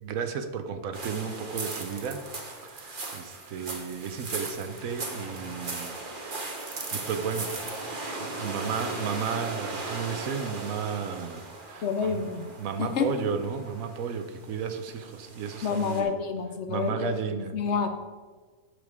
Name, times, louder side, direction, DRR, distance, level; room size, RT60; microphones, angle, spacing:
voice 1, 0.0-2.2 2.6-6.0 6.9-7.5 8.2-12.2 12.6-16.2 16.7-17.5, right 6 dB, 70° right, 8 dB, 1.1 m, -33 dB
sound 1, 0.9-16.0, right 3 dB, 40° right, 1.2 m, -38 dB
voice 2, 11.8-12.5 12.8-13.1 15.6-17.9, left 6 dB, 60° left, 7 dB, 0.8 m, -29 dB
8.6 x 7.1 x 4.8 m, 1.4 s
omnidirectional pair, 1.5 m